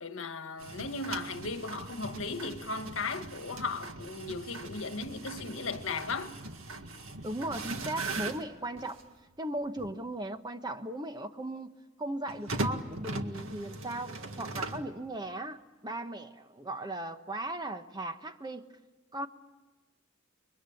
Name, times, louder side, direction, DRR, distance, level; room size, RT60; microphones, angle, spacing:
voice 1, 0.0-6.4, left 3 dB, 75° left, 1.6 m, -36 dB
sound 1, 0.6-9.1 9.8-9.9 12.3-14.9, right 2 dB, 90° right, 1.9 m, -40 dB
voice 2, 7.2-9.0 9.4-18.7 19.1-19.3, right 1 dB, 20° right, 1.2 m, -37 dB
29.5 x 23.0 x 8.6 m
head